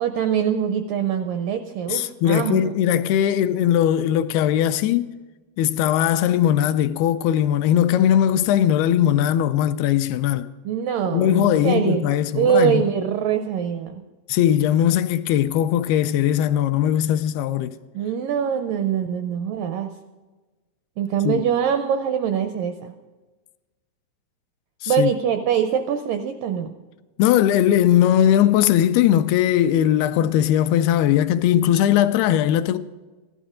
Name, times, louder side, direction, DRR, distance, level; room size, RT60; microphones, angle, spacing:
voice 1, 0.0-2.7 10.6-12.1 12.4-14.0 17.9-19.9 21.0-22.9 24.9-26.7, right 8 dB, 85° right, 1.9 m, -23 dB
voice 2, 1.9-5.1 5.6-10.5 11.1-12.9 14.3-17.7 21.3-21.4 24.8-25.1 27.2-32.8, left 11 dB, 80° left, 2.4 m, -19 dB
15.5 x 12.0 x 5.0 m
omnidirectional pair, 4.6 m